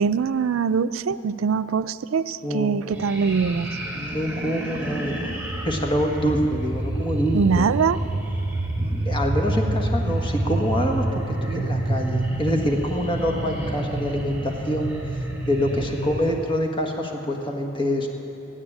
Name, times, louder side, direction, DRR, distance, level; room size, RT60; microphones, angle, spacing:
voice 1, 0.0-3.8 7.3-8.0, right 6 dB, 85° right, 14 dB, 0.4 m, -23 dB
voice 2, 2.4-2.7 3.9-5.3 5.6-7.7 8.8-11.0 11.4-18.1, equal, 25° left, 2 dB, 1.5 m, -26 dB
sound 1, 2.9-16.4, right 1 dB, 10° right, 2.7 m, -28 dB
14.0 x 9.8 x 10.0 m, 2.9 s
head